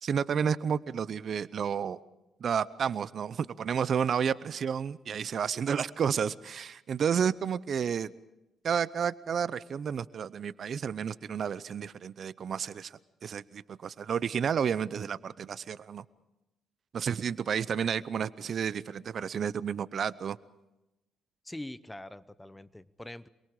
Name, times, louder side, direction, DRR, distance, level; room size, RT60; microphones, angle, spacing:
voice 1, 0.0-2.0 2.4-8.1 8.6-16.0 16.9-20.4, right 7 dB, 55° right, 17 dB, 0.7 m, -31 dB
voice 2, 21.4-23.3, left 1 dB, 10° left, 16 dB, 0.9 m, -43 dB
27.5 x 22.5 x 4.9 m, 0.96 s
cardioid pair, 90°, 0 cm